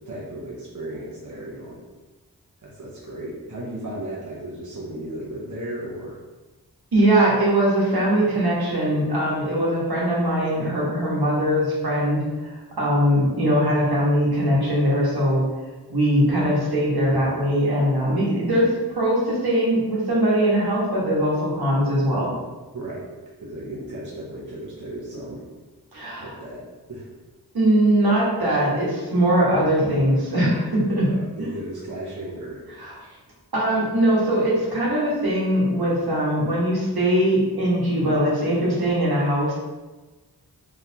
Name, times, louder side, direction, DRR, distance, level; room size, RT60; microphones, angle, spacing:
voice 1, 0.1-1.8 2.6-6.2 22.7-23.1 23.4-25.4 26.2-27.1 31.0-32.6, right 1 dB, 50° right, -6 dB, 1.0 m, -35 dB
voice 2, 6.9-15.4 15.9-22.3 25.9-26.3 27.5-31.1 31.4-31.5 32.8-32.9 33.5-39.5, right 1 dB, 75° right, -6 dB, 1.4 m, -21 dB
4.1 x 3.5 x 2.8 m, 1.2 s
wide cardioid pair, 45°, 38 cm